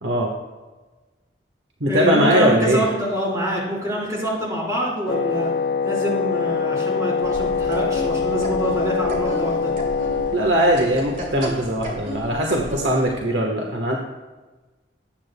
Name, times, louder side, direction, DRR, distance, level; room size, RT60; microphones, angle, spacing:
voice 1, 0.0-0.3 1.8-2.9 10.3-13.9, equal, 70° right, -1 dB, 1.3 m, -20 dB
voice 2, 1.9-5.5 5.8-9.7, equal, 20° right, -5 dB, 3.9 m, -25 dB
Wind instrument woodwind instrument, 5.1-10.4, left 5 dB, 55° left, 0.3 m, -23 dB
sound 1, 7.2-13.2, equal, 45° right, 2.4 m, -33 dB
19.0 x 8.7 x 2.2 m, 1.2 s
head